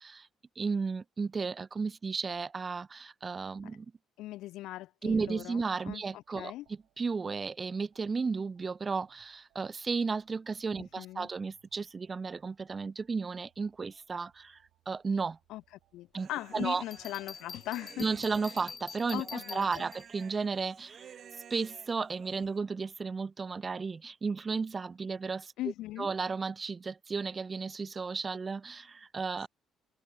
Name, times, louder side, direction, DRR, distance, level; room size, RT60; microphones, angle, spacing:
voice 1, 0.6-2.8 3.2-3.6 5.0-6.5 7.0-9.1 9.6-10.9 11.2-11.8 12.1-14.3 14.9-15.3 16.1-16.3 16.5-16.8 18.0-20.7 21.5-24.0 24.2-25.4 26.0-26.8 27.1-28.7 29.1-29.5, right 4 dB, 30° right, 0.3 m, -33 dB
voice 2, 4.2-6.7 10.8-11.3 15.5-15.6 15.9-18.1 19.1-19.9 25.6-26.1, left 16 dB, 80° left, 1.8 m, -40 dB
sound 1, 5.9-20.3, right 16 dB, 80° right, 7.1 m, -73 dB
Human voice, 16.2-22.6, right 8 dB, 55° right, 1.0 m, -53 dB
Bell, 16.9-20.3, left 5 dB, 40° left, 1.6 m, -46 dB
supercardioid pair, 80°, 0 cm